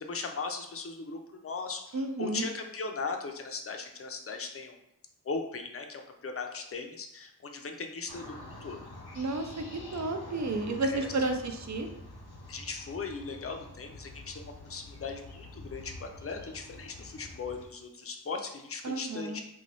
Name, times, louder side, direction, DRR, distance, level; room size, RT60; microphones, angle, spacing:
voice 1, 0.0-4.8 5.2-8.8 10.8-11.3 12.5-19.4, left 4 dB, 40° left, 4 dB, 0.5 m, -38 dB
voice 2, 1.9-2.5 9.2-9.6 9.9-11.9 18.8-19.4, right 2 dB, 50° right, 6 dB, 0.5 m, -31 dB
sound 1, 8.1-17.7, left 2 dB, 85° left, 0.7 m, -47 dB
3.0 x 2.3 x 3.9 m, 0.77 s
wide cardioid pair, 50°, 37 cm